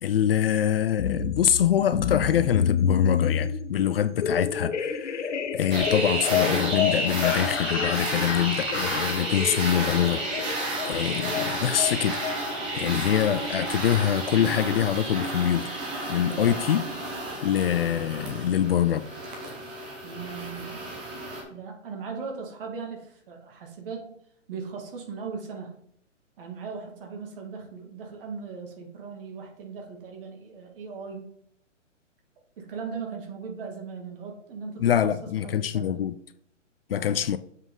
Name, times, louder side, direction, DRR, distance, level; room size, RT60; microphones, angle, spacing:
voice 1, 0.0-12.2 12.8-15.8 16.1-16.8 17.4-19.1 34.8-36.1 36.9-37.4, left 10 dB, 50° left, 0.5 m, -25 dB
sound 1, 1.0-12.8, left 7 dB, 70° left, 1.1 m, -29 dB
sound 2, 5.7-21.4, right 2 dB, 5° right, 0.3 m, -31 dB
voice 2, 16.2-16.6 20.0-20.8 21.5-24.2 24.5-25.8 26.4-31.3 32.6-36.0 36.9-37.2, right 5 dB, 45° right, 2.3 m, -38 dB
7.4 x 5.8 x 3.8 m
hypercardioid pair, 140°, 37 cm